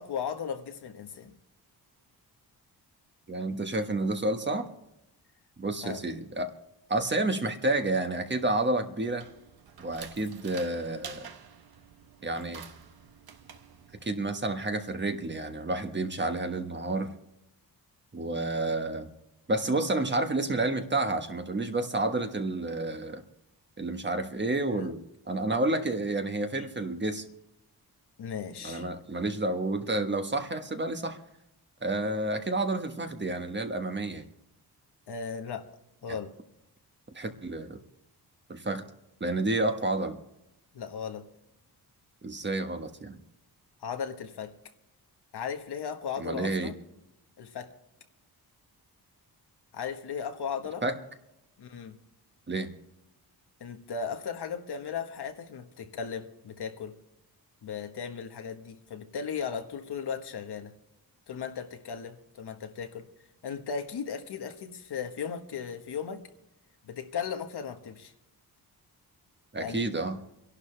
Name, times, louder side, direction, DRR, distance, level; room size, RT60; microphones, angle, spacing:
voice 1, 0.0-1.3 5.8-6.0 24.7-24.9 28.2-28.9 35.1-35.7 36.0-36.3 40.7-41.3 43.8-44.5 45.3-46.7 47.4-47.7 49.7-50.8 51.6-52.0 53.6-57.0 57.6-60.7 61.3-63.1 63.4-66.2 66.8-68.1 69.6-69.9, left 6 dB, 80° left, 1.5 m, -36 dB
voice 2, 3.3-4.7 5.6-6.5 6.9-9.3 9.8-11.3 12.2-12.6 14.0-17.1 18.1-19.1 19.5-23.2 23.8-25.0 25.3-27.2 28.6-31.2 31.8-34.2 37.1-37.8 38.5-38.8 39.2-40.2 42.2-43.2 46.2-46.7 50.8-51.0 52.5-52.7 69.5-70.2, right 2 dB, 30° right, 1.4 m, -30 dB
sound 1, 9.0-14.6, right 7 dB, 70° right, 1.3 m, -49 dB
26.5 x 11.5 x 3.4 m
wide cardioid pair, 110°, 39 cm